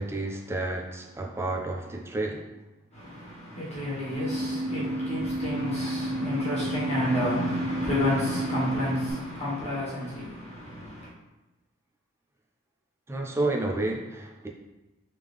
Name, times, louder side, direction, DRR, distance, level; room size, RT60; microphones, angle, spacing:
voice 1, 0.0-2.5 13.1-14.5, right 2 dB, 10° right, 0.4 m, -30 dB
voice 2, 2.9-11.1, left 1 dB, 30° left, 1.5 m, -30 dB
sound 1, 4.1-9.1, right 1 dB, 90° right, 1.2 m, -31 dB
3.6 x 3.3 x 3.4 m
head